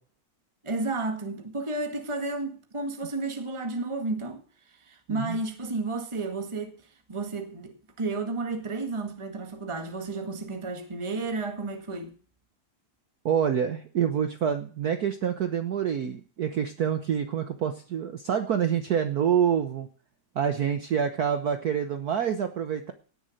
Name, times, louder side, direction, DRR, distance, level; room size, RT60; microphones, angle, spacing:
voice 1, 0.6-4.4 4.9-6.8 7.1-12.1, right 3 dB, 15° right, 1.7 m, -32 dB
voice 2, 5.1-5.4 13.2-19.9 20.3-22.9, right 8 dB, 55° right, 1.3 m, -27 dB
18.0 x 7.2 x 6.5 m
omnidirectional pair, 2.3 m